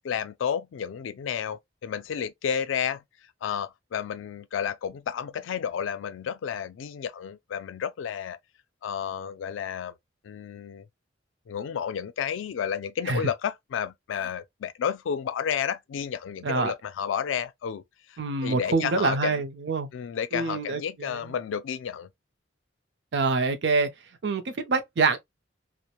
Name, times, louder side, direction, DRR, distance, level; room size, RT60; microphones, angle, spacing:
voice 1, 0.0-3.0 3.4-8.4 8.8-9.9 10.2-10.8 11.5-17.8 18.1-19.4 19.9-22.1, left 8 dB, 90° left, 0.3 m, -31 dB
voice 2, 18.2-19.9 20.3-21.3 23.1-23.9 24.2-25.2, right 4 dB, 65° right, 0.5 m, -26 dB
2.9 x 2.0 x 2.3 m
head